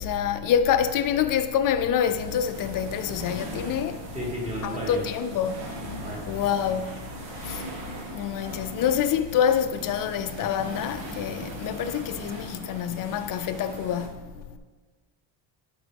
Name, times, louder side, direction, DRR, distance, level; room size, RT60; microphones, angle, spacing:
voice 1, 0.0-4.0 4.6-5.6 6.0-7.0 7.4-7.7 8.1-14.4, left 8 dB, 50° left, 0.5 m, -26 dB
sound 1, 2.1-14.1, right 1 dB, 90° right, 1.8 m, -40 dB
voice 2, 4.1-5.0 6.0-6.2, equal, 15° right, 2.4 m, -32 dB
12.0 x 5.2 x 3.5 m
cardioid pair, 150°, 43 cm